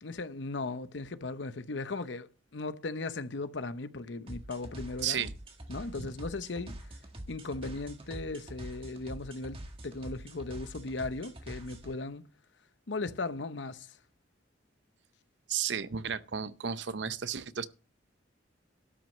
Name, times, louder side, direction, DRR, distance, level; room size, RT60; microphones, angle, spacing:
voice 1, 0.0-5.3 5.7-6.8 7.3-12.3 12.9-14.0, left 3 dB, 70° left, 0.8 m, -37 dB
sound 1, 4.3-11.9, right 1 dB, 30° right, 1.7 m, -45 dB
voice 2, 15.5-17.7, right 8 dB, 65° right, 0.7 m, -33 dB
12.0 x 6.2 x 7.4 m
head